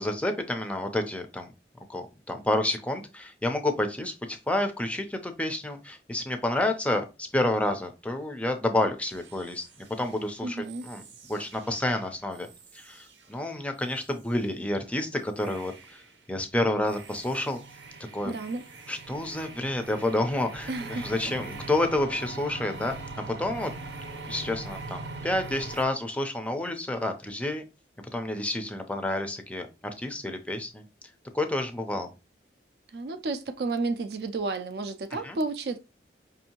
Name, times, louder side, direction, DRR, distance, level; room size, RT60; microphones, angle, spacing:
voice 1, 0.0-1.5 1.9-11.0 11.3-12.5 12.7-16.0 16.3-17.6 18.1-18.3 18.9-23.0 23.3-23.7 24.3-27.6 28.1-29.7 30.0-30.8 31.3-32.1 35.2-35.4, left 1 dB, 5° left, 0.4 m, -29 dB
sound 1, 9.1-13.5 13.8-14.2 15.4-16.2 16.6-25.8, right 3 dB, 85° right, 0.8 m, -43 dB
voice 2, 10.4-10.8 18.2-18.6 20.7-21.1 32.9-35.8, right 3 dB, 60° right, 0.4 m, -31 dB
5.1 x 2.7 x 2.8 m
head